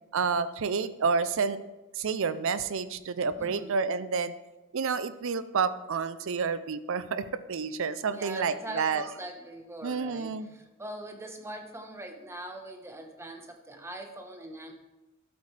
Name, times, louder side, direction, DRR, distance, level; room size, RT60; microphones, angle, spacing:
voice 1, 0.1-1.6 2.0-4.3 4.7-9.0 9.8-10.5, right 5 dB, 65° right, 14 dB, 0.5 m, -29 dB
voice 2, 3.4-3.8 8.1-14.7, right 1 dB, 15° right, 4 dB, 1.1 m, -42 dB
12.5 x 8.3 x 3.3 m, 1.1 s
head